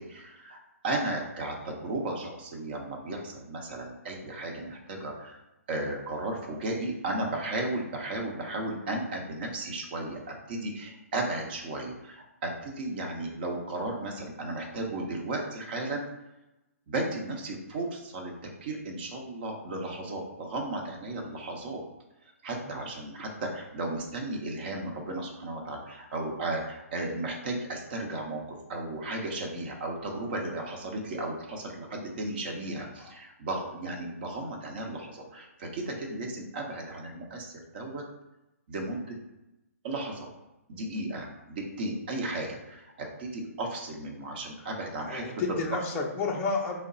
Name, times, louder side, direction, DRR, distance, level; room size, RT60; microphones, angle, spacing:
voice 1, 0.0-5.4 5.7-16.1 16.9-21.8 22.4-38.0 38.7-39.2 39.8-40.3 40.7-45.2, right 2 dB, 40° right, 1 dB, 0.9 m, -35 dB
voice 2, 45.0-46.8, left 4 dB, 15° left, 0 dB, 0.5 m, -31 dB
3.8 x 2.1 x 3.8 m, 0.95 s
hypercardioid pair, 155°, 8 cm